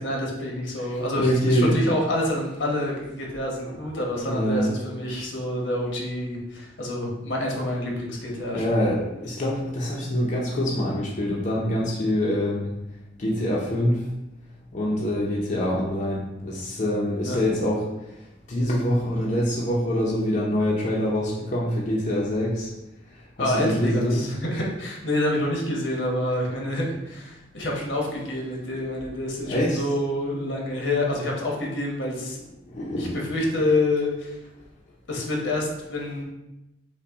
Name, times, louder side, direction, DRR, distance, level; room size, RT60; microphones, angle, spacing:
voice 1, 0.0-8.9 17.3-17.4 23.4-32.4 33.0-34.4 35.1-36.2, left 1 dB, 75° left, -1 dB, 1.1 m, -27 dB
voice 2, 0.8-2.0 4.3-4.7 8.5-12.7 13.2-14.0 14.7-17.8 18.5-22.7 23.4-24.2 29.5-29.8 32.7-33.2, equal, 45° left, -5 dB, 0.7 m, -25 dB
5.5 x 2.2 x 3.5 m, 0.93 s
head